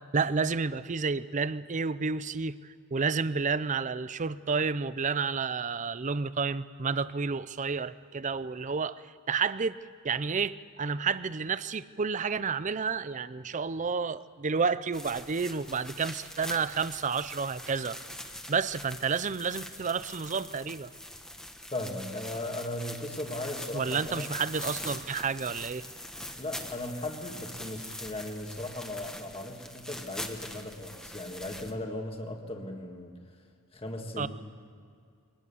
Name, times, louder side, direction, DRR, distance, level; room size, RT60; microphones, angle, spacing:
voice 1, 0.1-9.8 10.0-18.0 18.5-20.9 23.7-25.8 34.2-34.3, right 5 dB, 35° right, 16 dB, 0.5 m, -30 dB
sound 1, 14.9-31.7, left 1 dB, 5° left, 1.3 m, -43 dB
voice 2, 21.7-24.3 26.4-33.1 33.7-34.3, left 1 dB, 25° left, 2 dB, 1.8 m, -37 dB
23.5 x 19.0 x 7.1 m, 2.2 s
head